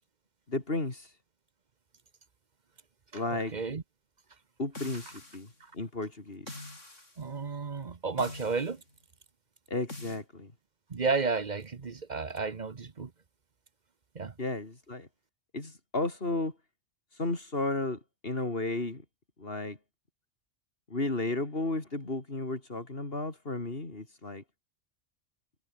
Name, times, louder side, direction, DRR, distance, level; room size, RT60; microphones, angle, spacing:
voice 1, 0.5-1.1 3.1-3.5 4.6-5.5 5.7-6.5 9.7-10.5 14.4-15.1 15.5-16.5 17.2-19.0 19.4-19.8 20.9-24.4, left 2 dB, 50° left, 3.6 m, -33 dB
voice 2, 3.1-3.8 5.6-5.7 7.2-8.8 10.9-13.1 14.1-14.3, right 4 dB, 40° right, 1.1 m, -32 dB
sound 1, 4.8-5.5 6.5-7.2 8.2-8.8 9.9-10.2, left 2 dB, 90° left, 6.3 m, -44 dB
omnidirectional pair, 1.2 m